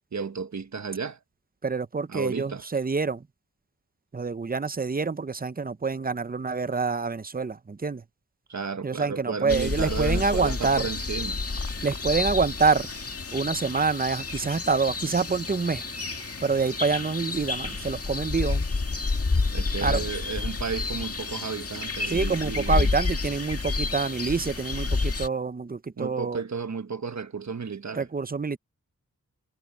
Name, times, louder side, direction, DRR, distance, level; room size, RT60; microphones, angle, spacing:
voice 1, 0.1-1.2 2.1-2.7 8.5-11.4 19.5-22.9 26.0-28.1, right 5 dB, 60° right, 1.3 m, -33 dB
voice 2, 1.6-3.2 4.1-8.0 8.8-10.9 11.8-12.9 13.3-15.8 16.4-18.7 19.8-20.0 22.1-26.4 27.9-28.6, right 4 dB, 30° right, 0.7 m, -26 dB
sound 1, 9.5-25.3, left 3 dB, 50° left, 2.0 m, -30 dB
wide cardioid pair, 90°, 31 cm